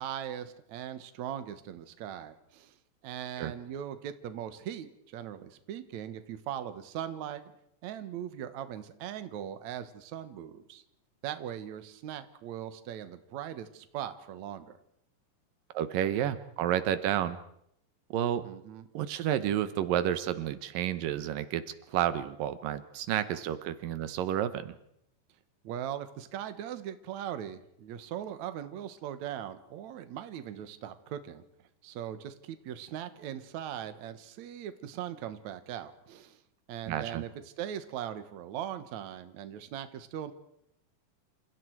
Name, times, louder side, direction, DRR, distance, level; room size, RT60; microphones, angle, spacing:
voice 1, 0.0-2.7 3.0-7.4 7.8-10.8 11.2-14.8 18.4-18.9 25.6-31.4 31.8-36.4 36.7-37.3 37.6-40.3, right 10 dB, 65° right, 11 dB, 2.5 m, -40 dB
voice 2, 15.7-17.4 18.1-18.5 18.9-21.6 21.9-24.8 36.9-37.2, right 11 dB, 80° right, 13 dB, 2.7 m, -30 dB
28.5 x 28.0 x 4.7 m, 0.75 s
omnidirectional pair, 3.9 m